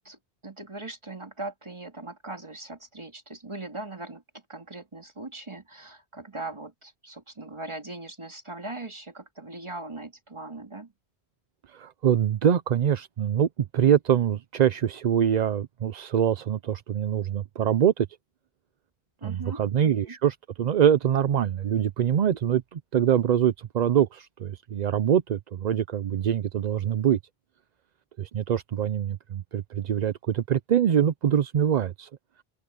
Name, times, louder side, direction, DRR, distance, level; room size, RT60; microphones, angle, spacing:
voice 1, 0.0-4.2 4.5-10.9 19.2-20.1, right 2 dB, 30° right, 2.1 m, -40 dB
voice 2, 11.7-13.5 13.7-18.1 19.2-27.2 28.2-32.1, right 9 dB, 50° right, 0.6 m, -24 dB
open air
omnidirectional pair, 1.1 m